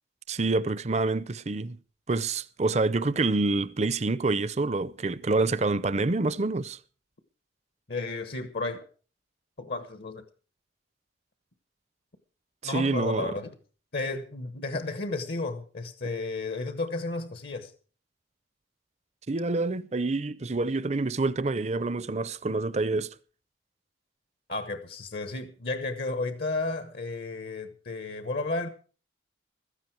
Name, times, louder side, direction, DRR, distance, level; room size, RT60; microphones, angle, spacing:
voice 1, 0.3-1.8 2.1-6.8 12.6-13.3 19.3-23.1, right 3 dB, 35° right, 0.6 m, -27 dB
voice 2, 7.9-8.9 9.6-10.2 12.6-13.5 13.9-17.7 24.5-28.7, left 3 dB, 60° left, 1.2 m, -33 dB
16.0 x 13.5 x 4.6 m
head